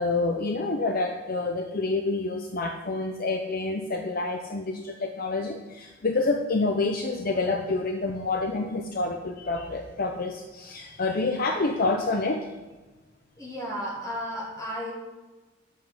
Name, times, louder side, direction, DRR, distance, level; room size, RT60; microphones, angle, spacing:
voice 1, 0.0-12.5, left 3 dB, 50° left, 4 dB, 0.7 m, -28 dB
voice 2, 13.4-14.9, equal, 20° left, -4 dB, 3.1 m, -33 dB
10.0 x 7.8 x 5.4 m, 1.2 s
head